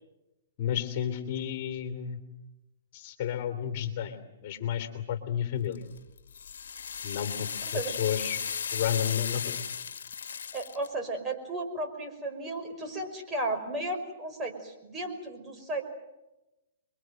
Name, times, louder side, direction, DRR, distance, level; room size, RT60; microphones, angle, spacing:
voice 1, 0.6-2.2 2.9-5.8 7.0-8.4 8.7-9.6, left 9 dB, 45° left, 8 dB, 3.3 m, -32 dB
sound 1, 5.7-10.9, left 7 dB, 75° left, 1.6 m, -35 dB
voice 2, 7.6-7.9 10.5-15.8, right 2 dB, 15° right, 3 dB, 5.6 m, -34 dB
29.5 x 23.5 x 7.8 m, 0.99 s
hypercardioid pair, 130°, 0 cm